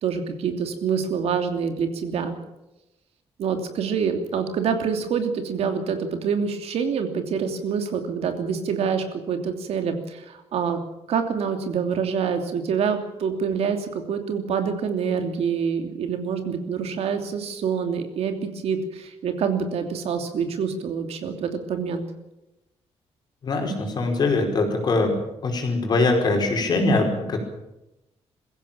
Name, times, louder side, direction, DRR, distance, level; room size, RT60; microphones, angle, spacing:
voice 1, 0.0-2.4 3.4-10.8 11.1-22.0, right 6 dB, 65° right, 6 dB, 2.9 m, -26 dB
voice 2, 23.4-25.2 25.4-27.4, left 3 dB, 40° left, 3 dB, 5.0 m, -22 dB
22.0 x 16.0 x 8.9 m, 0.92 s
cardioid pair, 175°, 11 cm